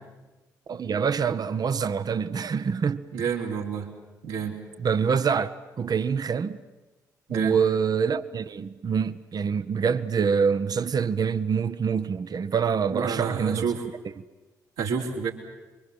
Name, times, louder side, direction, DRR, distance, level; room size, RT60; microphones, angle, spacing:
voice 1, 0.7-3.0 4.8-6.6 7.3-13.7, right 6 dB, 45° right, 1.0 m, -25 dB
voice 2, 3.1-3.9 4.2-4.6 7.3-7.6 12.9-13.8 14.8-15.3, right 6 dB, 75° right, 3.6 m, -29 dB
27.5 x 24.0 x 7.8 m
hypercardioid pair, 40°, 9 cm